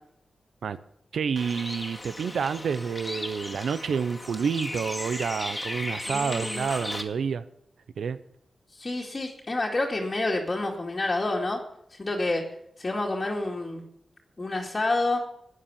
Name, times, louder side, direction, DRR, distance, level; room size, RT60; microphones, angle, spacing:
voice 1, 1.1-7.4 8.0-8.2, right 6 dB, 85° right, 0.7 m, -29 dB
Bird, 1.4-7.0, left 1 dB, 15° left, 2.1 m, -36 dB
voice 2, 6.1-6.7 8.7-11.6 11.9-12.4 12.8-13.8 14.4-15.2, left 2 dB, 30° left, 2.2 m, -28 dB
13.0 x 9.9 x 7.0 m
wide cardioid pair, 105°, 0 cm